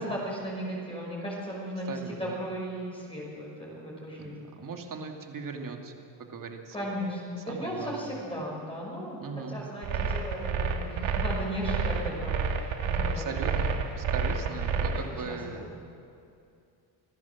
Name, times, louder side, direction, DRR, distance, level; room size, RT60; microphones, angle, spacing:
voice 1, 0.0-4.5 6.7-9.2 9.5-13.5 14.4-15.7, equal, 10° left, -4 dB, 5.8 m, -36 dB
voice 2, 1.9-2.4 4.2-6.9 7.5-8.2 9.2-9.6 13.1-15.7, right 4 dB, 45° right, 3 dB, 2.5 m, -39 dB
sound 1, 9.8-15.1, right 5 dB, 75° right, 2.3 m, -29 dB
26.0 x 15.5 x 7.4 m, 2.6 s
cardioid pair, 110°, 46 cm